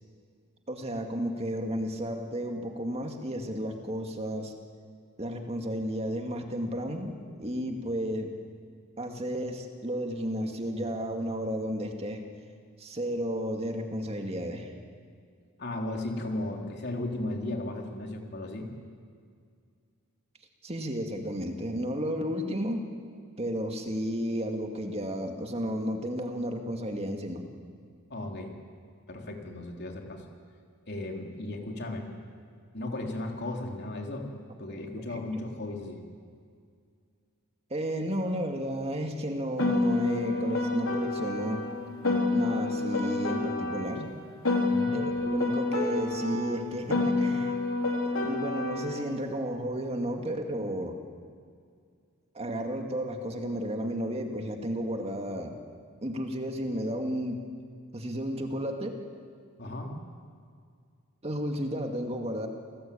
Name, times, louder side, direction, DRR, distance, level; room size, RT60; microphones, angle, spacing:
voice 1, 0.7-4.5 5.2-8.3 9.0-12.2 12.8-14.7 20.6-22.9 23.4-27.4 34.6-35.2 37.7-41.7 42.3-44.2 44.9-47.6 48.0-51.0 52.3-55.6 56.0-57.5 57.9-59.0 61.2-62.5, equal, 30° right, 3 dB, 2.1 m, -33 dB
voice 2, 15.6-18.7 28.1-28.5 29.1-30.2 30.9-32.1 32.7-34.3 34.6-36.0 44.7-45.0 59.6-59.9, left 1 dB, 50° left, 1 dB, 3.7 m, -35 dB
Piano, 39.6-44.1 44.4-49.1, left 2 dB, 70° left, 3.5 m, -28 dB
28.5 x 19.0 x 8.7 m, 2.2 s
head